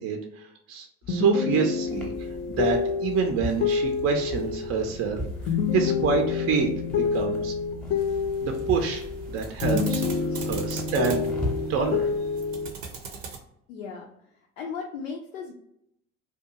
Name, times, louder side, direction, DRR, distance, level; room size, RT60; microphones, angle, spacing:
voice 1, 0.0-5.2 5.7-6.7 7.0-7.5 8.4-10.0 10.5-11.3 11.7-12.1, right 5 dB, 35° right, 4 dB, 0.5 m, -27 dB
sound 1, 1.1-9.4 9.6-12.7, left 5 dB, 35° left, 0.5 m, -28 dB
sound 2, 1.9-12.2, left 1 dB, 5° left, 0.8 m, -38 dB
sound 3, 8.0-13.4, right 5 dB, 80° right, 0.7 m, -40 dB
voice 2, 13.7-14.1 14.6-15.5, left 5 dB, 90° left, -1 dB, 0.5 m, -36 dB
2.6 x 2.2 x 2.8 m, 0.75 s
hypercardioid pair, 70°, 37 cm